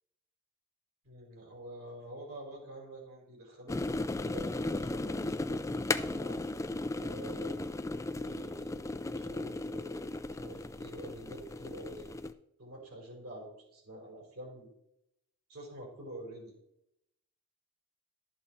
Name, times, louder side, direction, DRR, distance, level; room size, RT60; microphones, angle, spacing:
voice 1, 1.0-6.4 7.0-7.7 8.2-12.1 12.6-14.7 15.5-16.5, right 1 dB, 75° right, -1 dB, 4.5 m, -47 dB
sound 1, 3.7-12.3, left 2 dB, 15° left, 0.3 m, -36 dB
12.0 x 7.4 x 4.2 m, 0.81 s
head